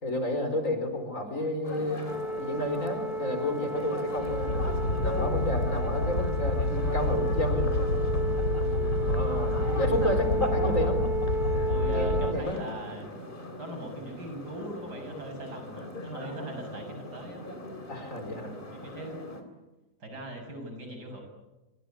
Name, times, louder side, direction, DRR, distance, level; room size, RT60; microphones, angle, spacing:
voice 1, 0.0-2.1 2.4-4.6 5.0-7.7 9.0-11.1 11.9-12.6 17.9-18.5, left 1 dB, 50° left, 7 dB, 5.0 m, -31 dB
sound 1, 1.6-19.4, left 1 dB, 30° left, 3.6 m, -39 dB
sound 2, 2.1-12.3, right 1 dB, ahead, 1.9 m, -33 dB
sound 3, 4.2-12.3, left 2 dB, 80° left, 2.5 m, -29 dB
voice 2, 8.3-9.4 11.7-13.1 13.6-17.5 18.7-19.2 20.0-21.2, right 1 dB, 90° right, 5 dB, 7.5 m, -41 dB
27.5 x 25.5 x 8.5 m, 1.0 s
omnidirectional pair, 1.7 m